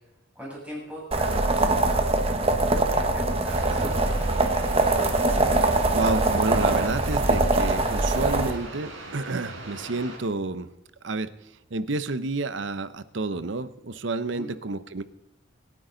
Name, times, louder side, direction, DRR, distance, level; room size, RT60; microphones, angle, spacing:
voice 1, 0.4-3.9 14.3-14.5, equal, 5° right, -6 dB, 7.1 m, -40 dB
sound 1, 1.1-8.5, right 2 dB, 30° right, 1.3 m, -23 dB
sound 2, 3.5-10.2, right 3 dB, 85° right, 4.4 m, -40 dB
voice 2, 5.4-10.7 11.0-11.3 11.7-15.0, right 3 dB, 65° right, 13 dB, 0.8 m, -30 dB
26.0 x 10.0 x 3.9 m, 0.92 s
head